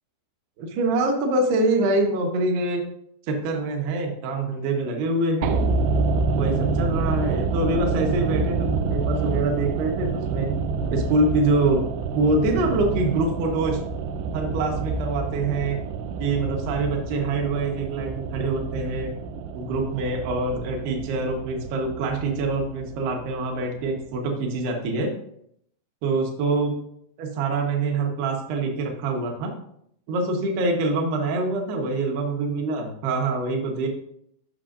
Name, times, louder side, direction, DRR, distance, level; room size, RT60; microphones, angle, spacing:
voice 1, 0.6-2.8 3.3-5.6 6.3-10.5 10.9-11.9 12.1-13.8 14.3-15.8 16.2-19.2 19.5-25.1 26.0-26.8 27.2-29.5 30.1-33.9, right 2 dB, 70° right, 2 dB, 3.0 m, -25 dB
sound 1, 5.4-23.6 23.9-24.0, right 4 dB, 90° right, 2.3 m, -28 dB
14.0 x 6.0 x 2.5 m, 0.71 s
omnidirectional pair, 5.4 m